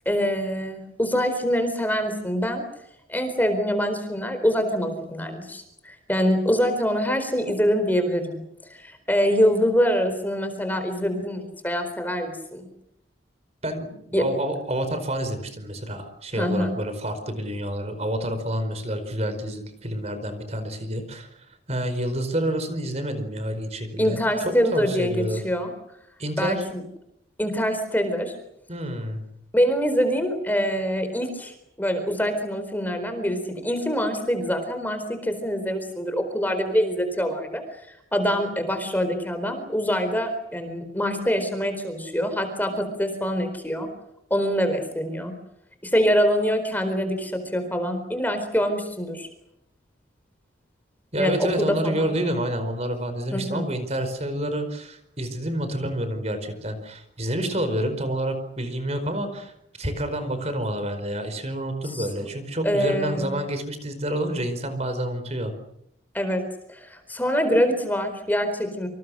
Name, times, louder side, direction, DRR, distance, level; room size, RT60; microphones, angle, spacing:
voice 1, 0.1-2.6 3.1-8.4 8.7-12.7 14.1-14.2 16.4-16.7 24.0-25.7 26.4-26.8 27.4-28.3 29.5-43.9 44.3-45.3 45.8-49.3 51.2-52.1 53.3-53.7 61.9-62.1 62.6-63.3 66.1-66.4 66.7-68.9, equal, 10° left, 7 dB, 4.3 m, -25 dB
voice 2, 13.6-25.4 26.2-26.6 28.7-29.2 51.1-59.5 59.8-65.5, right 1 dB, 35° right, 9 dB, 4.8 m, -28 dB
28.5 x 26.5 x 6.4 m, 0.79 s
head